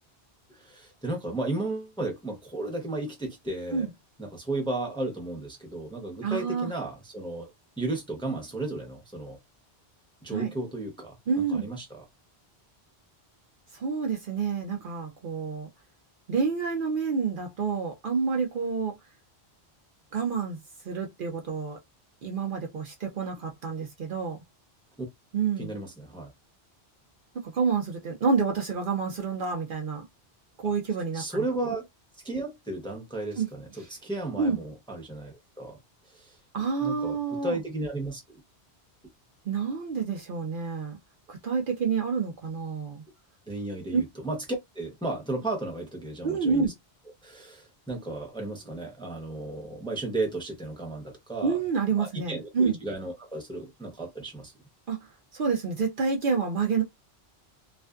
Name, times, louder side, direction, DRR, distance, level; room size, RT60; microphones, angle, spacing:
voice 1, 0.5-3.9 4.2-7.5 7.8-9.4 10.2-12.0 25.6-26.3 31.1-31.8 32.2-35.8 36.1-36.3 36.8-38.2 43.5-44.4 44.7-46.7 47.2-51.6 52.0-54.5, right 2 dB, 5° left, 0.6 m, -34 dB
voice 2, 6.2-6.7 10.3-10.5 11.3-11.7 13.7-15.7 16.3-19.0 20.1-20.6 20.8-21.8 22.2-24.4 25.3-25.7 27.3-30.0 30.6-31.4 33.4-33.5 33.8-33.9 34.4-34.6 36.5-37.6 39.5-41.0 41.3-43.0 43.9-44.0 46.2-46.7 51.4-52.8 54.9-55.1 55.3-56.8, right 5 dB, 60° right, 0.7 m, -28 dB
2.4 x 2.4 x 2.2 m
omnidirectional pair, 1.1 m